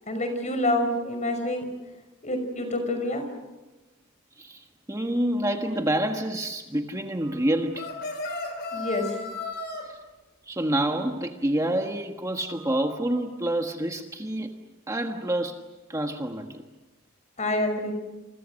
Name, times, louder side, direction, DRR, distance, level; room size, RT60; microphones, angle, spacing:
voice 1, 0.1-1.7 2.2-3.2 8.7-9.1 17.4-17.9, left 1 dB, 35° left, 7 dB, 5.9 m, -27 dB
voice 2, 4.4-7.9 9.8-10.0 10.4-14.5 14.9-15.6 15.9-16.6, right 1 dB, 15° right, 4 dB, 1.4 m, -28 dB
sound 1, 7.7-9.8, left 3 dB, 55° left, 5.3 m, -34 dB
29.0 x 29.0 x 6.5 m, 1.1 s
head